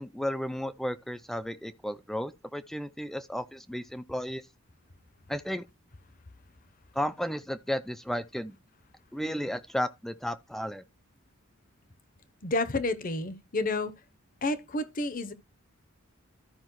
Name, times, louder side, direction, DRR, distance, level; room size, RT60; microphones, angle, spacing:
voice 1, 0.0-4.5 5.3-5.7 6.9-8.5 9.1-10.8, equal, ahead, 0.4 m, -33 dB
voice 2, 12.4-13.9 14.4-15.3, left 2 dB, 40° left, 0.8 m, -30 dB
13.5 x 5.4 x 3.0 m
head